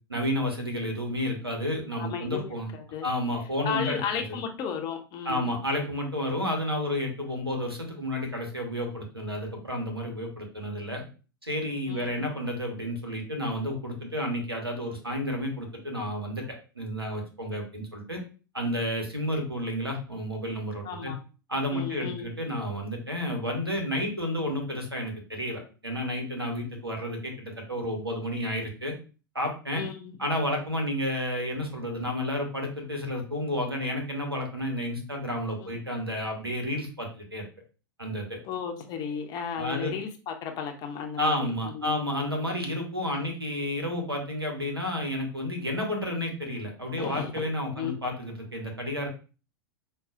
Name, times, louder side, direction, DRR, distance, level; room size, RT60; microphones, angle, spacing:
voice 1, 0.1-2.7 3.0-4.4 5.2-11.0 11.4-16.4 16.7-18.2 18.5-21.1 21.5-28.9 29.3-29.8 30.2-37.5 38.0-38.4 39.6-39.9 41.2-49.1, left 1 dB, 90° right, 2 dB, 1.0 m, -31 dB
voice 2, 2.0-3.1 3.6-5.5 11.9-12.3 20.8-21.2 21.7-22.3 29.7-30.2 35.6-35.7 38.4-42.0 47.0-47.5 47.8-48.1, left 7 dB, 35° left, 4 dB, 0.7 m, -34 dB
5.3 x 2.4 x 2.4 m, 0.35 s
figure-of-eight pair, 90°, 12 cm